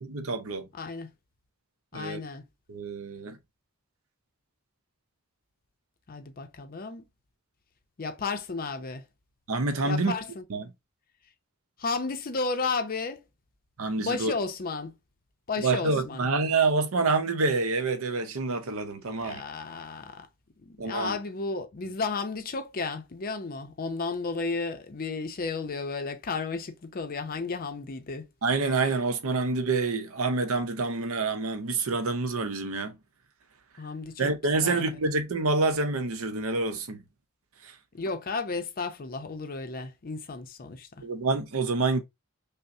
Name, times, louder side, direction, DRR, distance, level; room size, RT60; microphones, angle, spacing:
voice 1, 0.0-0.7 1.9-2.2 2.7-3.4 9.5-10.1 10.5-10.7 13.8-14.3 15.6-19.4 20.8-21.2 28.4-33.0 34.2-37.0 37.6-37.7 41.0-42.0, right 3 dB, 70° right, 0.7 m, -27 dB
voice 2, 0.7-1.1 1.9-2.4 6.1-7.0 8.0-9.0 9.8-10.4 11.8-13.2 14.0-14.9 15.5-16.3 19.2-20.3 20.6-28.3 33.8-34.3 34.6-34.8 37.9-40.9, left 4 dB, 40° left, 0.5 m, -33 dB
5.4 x 2.0 x 2.6 m
head